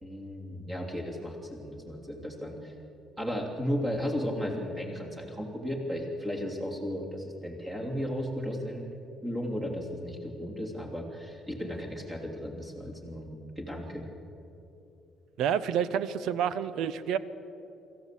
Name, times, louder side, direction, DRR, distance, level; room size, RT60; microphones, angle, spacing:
voice 1, 0.0-2.7 3.2-8.9 9.2-14.1, equal, 15° right, 0 dB, 3.1 m, -35 dB
voice 2, 15.4-17.2, right 8 dB, 70° right, 15 dB, 0.9 m, -28 dB
24.5 x 14.5 x 8.4 m, 2.9 s
cardioid pair, 170°, 0 cm